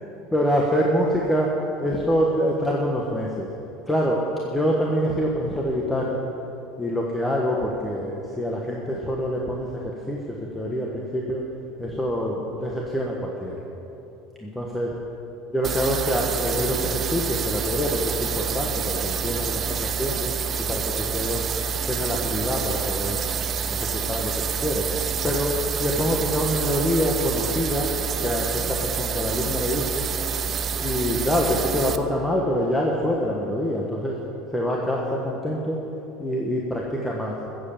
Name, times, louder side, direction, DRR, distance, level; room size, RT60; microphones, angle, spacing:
voice 1, 0.3-1.5 1.8-3.5 3.9-6.2 6.8-11.4 11.8-13.6 14.4-14.9 15.5-20.3 20.7-21.4 21.8-23.2 23.7-24.9 25.2-27.9 28.2-30.1 30.8-34.2 34.5-35.8 36.2-37.3, equal, 10° left, -2 dB, 1.3 m, -25 dB
sound 1, 15.6-32.0, right 6 dB, 30° right, 0.6 m, -27 dB
14.5 x 7.9 x 7.2 m, 3.0 s
supercardioid pair, 130°, 0 cm